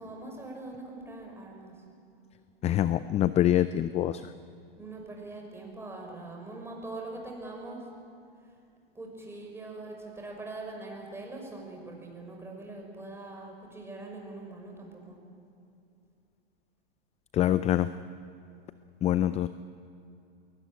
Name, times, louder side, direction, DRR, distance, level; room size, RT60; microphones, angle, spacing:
voice 1, 0.0-1.7 4.8-7.8 8.9-15.2, right 2 dB, 10° right, 0 dB, 6.1 m, -42 dB
voice 2, 2.6-4.2 17.3-17.9 19.0-19.5, left 12 dB, 20° left, 14 dB, 0.5 m, -25 dB
22.0 x 18.5 x 9.1 m, 2.6 s
hypercardioid pair, 115°, 30 cm